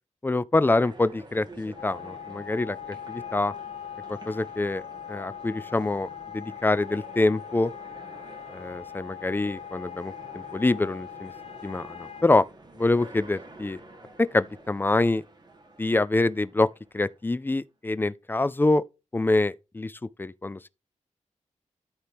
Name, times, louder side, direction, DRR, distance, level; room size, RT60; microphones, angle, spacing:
voice 1, 0.2-3.5 4.1-4.8 5.1-7.7 8.5-11.3 11.6-12.5 12.7-13.8 14.2-15.2 15.8-16.7 16.9-18.8 19.1-20.7, left 2 dB, 15° left, 0.4 m, -25 dB
sound 1, 0.7-17.3, right 2 dB, 35° right, 1.9 m, -49 dB
sound 2, 1.8-12.2, left 9 dB, 55° left, 0.6 m, -41 dB
13.0 x 4.4 x 3.5 m
wide cardioid pair, 130°, 12 cm